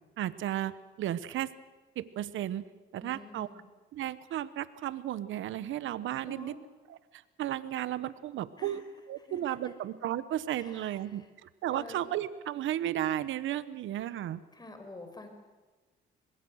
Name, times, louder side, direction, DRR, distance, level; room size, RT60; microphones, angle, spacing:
voice 1, 0.2-0.7 1.0-1.5 2.0-2.7 2.9-3.5 3.9-6.5 7.1-8.8 9.1-14.4, right 12 dB, 80° right, 15 dB, 1.1 m, -34 dB
voice 2, 3.0-3.6 6.2-6.6 8.6-8.8 9.2-9.7 10.5-11.3 11.7-12.1 14.5-15.3, left 1 dB, 20° left, 6 dB, 5.1 m, -48 dB
24.5 x 21.5 x 6.4 m, 1.3 s
cardioid pair, 90°, 20 cm